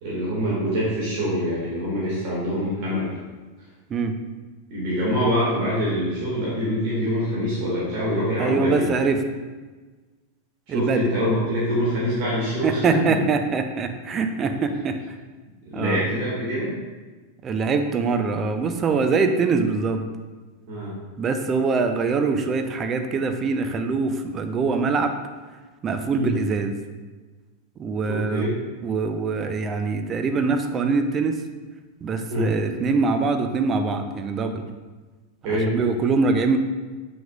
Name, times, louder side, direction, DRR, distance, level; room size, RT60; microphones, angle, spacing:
voice 1, 0.0-3.1 4.7-8.9 10.7-13.0 15.6-16.7 20.7-20.9 26.1-26.3 28.1-28.5 32.3-32.5 35.4-35.7, equal, 45° right, -7 dB, 1.9 m, -25 dB
voice 2, 8.4-9.2 10.7-11.1 12.6-15.2 15.7-16.1 17.4-20.0 21.2-25.2 25.8-26.8 27.8-28.5 28.8-31.4 32.0-34.7 35.5-36.6, right 4 dB, 25° right, 6 dB, 0.5 m, -23 dB
7.1 x 5.9 x 2.4 m, 1.3 s
figure-of-eight pair, 90°, 0 cm